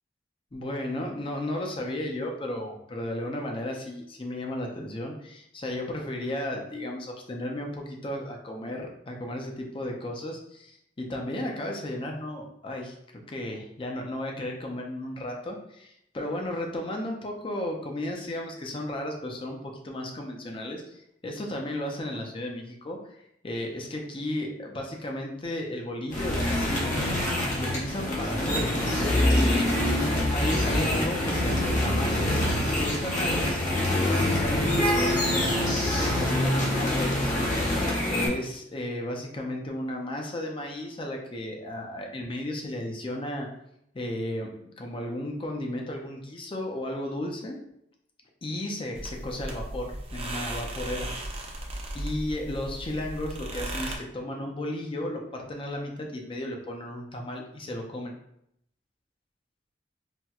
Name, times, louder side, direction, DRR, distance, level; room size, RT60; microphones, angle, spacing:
voice 1, 0.5-23.2 23.4-27.2 27.6-28.7 29.3-29.7 30.3-32.5 32.8-33.6 34.0-37.8 38.1-43.5 43.9-47.6 48.4-51.1 51.9-58.1, left 1 dB, 30° left, 1 dB, 0.5 m, -34 dB
sound 1, 26.1-38.3, left 1 dB, 45° left, 0.9 m, -25 dB
sound 2, 48.9-54.0, right 1 dB, 35° right, 0.5 m, -36 dB
4.2 x 2.1 x 2.3 m, 0.75 s
head